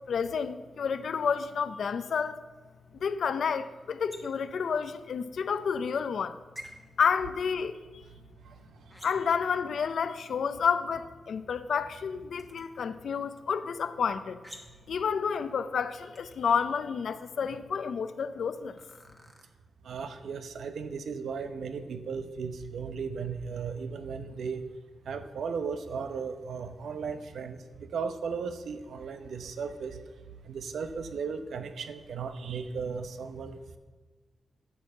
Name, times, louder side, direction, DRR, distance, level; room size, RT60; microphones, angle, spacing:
voice 1, 0.1-2.4 3.0-6.4 7.0-7.7 9.0-14.4 14.9-18.8, left 6 dB, 65° left, 12 dB, 0.5 m, -30 dB
sound 1, 4.1-4.5 6.5-6.7 8.9-9.4 12.4-12.6 14.4-14.9 16.1-16.6 18.8-19.4, equal, 5° right, 1.2 m, -48 dB
voice 2, 19.8-24.7 25.1-30.0 30.5-33.8, right 5 dB, 85° right, 9 dB, 0.8 m, -36 dB
11.0 x 5.5 x 7.7 m, 1.3 s
wide cardioid pair, 155°, 0 cm